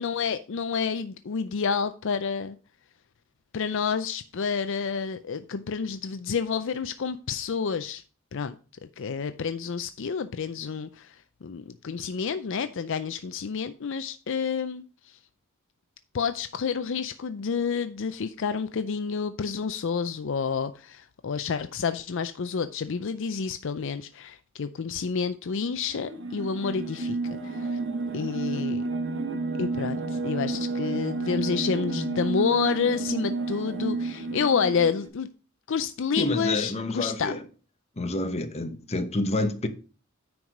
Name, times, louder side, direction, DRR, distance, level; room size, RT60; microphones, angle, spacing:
voice 1, 0.0-2.6 3.5-8.0 8.3-8.5 9.0-15.2 16.1-27.2 27.4-27.8 28.1-28.8 29.6-35.3 35.7-37.3, left 6 dB, 60° left, 0.5 m, -29 dB
sound 1, 25.9-35.1, right 3 dB, 60° right, 1.1 m, -31 dB
voice 2, 36.2-37.4 38.0-39.7, left 2 dB, 30° left, 1.0 m, -28 dB
9.5 x 4.7 x 5.2 m
head